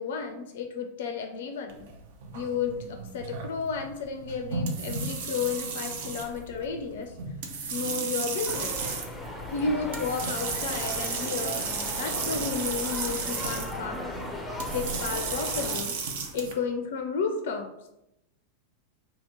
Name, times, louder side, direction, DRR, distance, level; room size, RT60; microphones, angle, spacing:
voice 1, 0.0-1.9 2.3-7.2 7.7-8.8 9.5-11.7 12.0-16.0 16.3-17.7, left 5 dB, 55° left, 5 dB, 0.4 m, -32 dB
sound 1, 1.7-16.5, right 4 dB, 55° right, 0.6 m, -34 dB
sound 2, 8.5-15.8, left 2 dB, 5° left, 0.6 m, -37 dB
2.8 x 2.7 x 4.3 m, 0.86 s
figure-of-eight pair, 90°, 0 cm